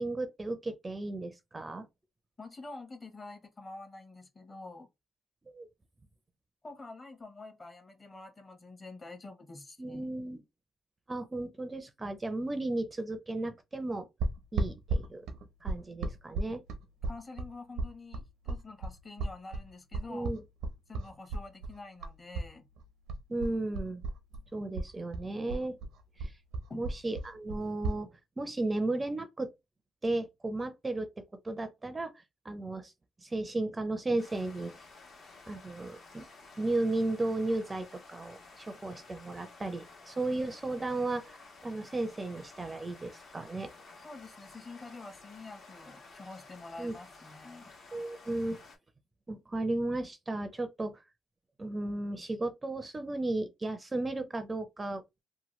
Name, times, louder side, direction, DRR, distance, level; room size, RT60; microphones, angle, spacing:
voice 1, 0.0-1.9 5.5-5.7 9.8-10.4 11.1-14.1 14.5-15.2 15.6-16.6 20.1-20.4 23.3-24.0 24.5-25.8 26.2-26.3 26.7-29.5 30.0-31.1 31.4-32.1 32.4-32.9 33.2-34.7 35.5-36.3 36.6-41.4 41.6-43.7 46.8-46.9 47.9-48.6 49.3-51.0 51.6-55.0, right 2 dB, 25° right, 0.4 m, -34 dB
voice 2, 2.4-4.9 6.6-10.1 17.0-20.4 20.9-22.7 26.7-26.9 44.0-47.7, left 3 dB, 30° left, 0.9 m, -47 dB
sound 1, 14.2-22.5 22.8-24.4 24.7-28.0, right 2 dB, 90° right, 0.6 m, -35 dB
sound 2, 34.2-48.8, left 3 dB, 70° left, 1.2 m, -53 dB
2.9 x 2.1 x 3.0 m
cardioid pair, 90°, 0 cm